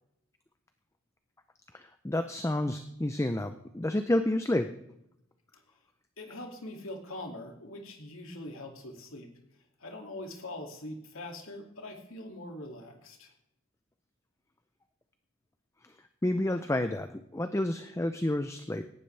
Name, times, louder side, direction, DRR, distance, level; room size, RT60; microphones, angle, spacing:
voice 1, 1.7-4.8 15.8-15.9 16.2-18.8, left 1 dB, 15° left, 8 dB, 0.5 m, -30 dB
voice 2, 6.2-9.3 9.8-13.3, left 1 dB, 75° left, 3 dB, 2.5 m, -43 dB
18.0 x 12.0 x 3.3 m, 0.81 s
head